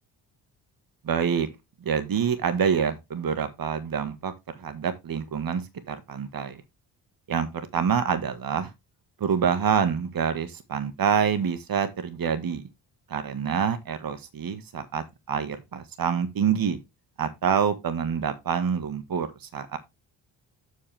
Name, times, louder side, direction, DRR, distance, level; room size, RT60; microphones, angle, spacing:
voice 1, 1.0-1.5 1.8-6.6 7.3-8.7 9.2-12.7 13.1-16.8 17.2-19.8, right 7 dB, 45° right, 1.7 m, -27 dB
8.3 x 7.7 x 3.4 m
hypercardioid pair, 45°, 49 cm